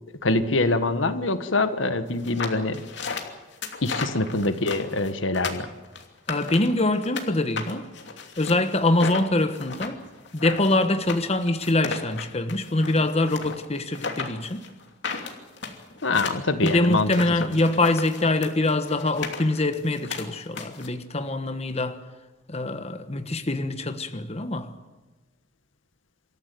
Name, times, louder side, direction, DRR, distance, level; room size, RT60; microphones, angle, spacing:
voice 1, 0.2-2.8 3.8-5.7 16.0-17.1, left 2 dB, 80° left, 1.4 m, -24 dB
sound 1, 2.2-7.3 7.6-20.9, left 4 dB, 65° left, 2.9 m, -35 dB
voice 2, 6.3-7.9 8.4-10.0 10.3-14.7 16.6-22.0 22.5-24.7, left 2 dB, 35° left, 1.2 m, -24 dB
26.0 x 14.0 x 9.2 m
head